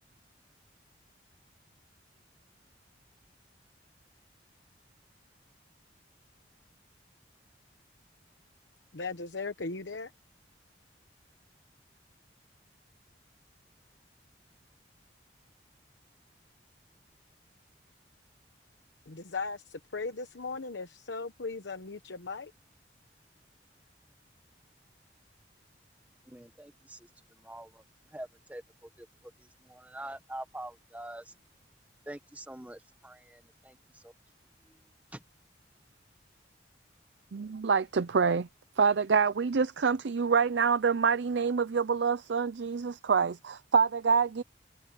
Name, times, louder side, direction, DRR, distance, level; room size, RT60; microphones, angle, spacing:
voice 1, 8.9-10.1 19.1-22.5, left 4 dB, 85° left, 1.1 m, -37 dB
voice 2, 26.3-27.8 28.1-29.1 29.4-31.3 32.0-34.1 35.1-35.2, right 1 dB, 10° right, 1.5 m, -45 dB
voice 3, 37.3-38.5 38.8-44.4, right 5 dB, 80° right, 0.5 m, -26 dB
head